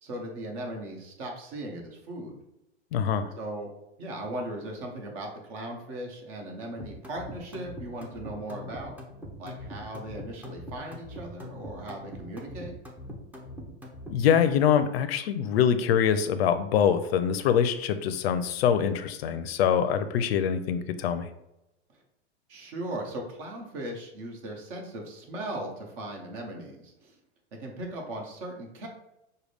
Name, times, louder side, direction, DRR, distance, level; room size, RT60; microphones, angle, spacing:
voice 1, 0.0-2.4 3.4-3.7 4.0-8.9 9.4-12.7 22.5-27.2 27.5-28.9, right 1 dB, 50° right, 1 dB, 1.4 m, -38 dB
voice 2, 2.9-3.3 14.1-21.3, left 8 dB, 60° left, 11 dB, 0.5 m, -24 dB
sound 1, 6.8-14.5, left 1 dB, 5° right, 0.6 m, -42 dB
6.2 x 2.3 x 3.4 m, 0.89 s
hypercardioid pair, 130°, 35 cm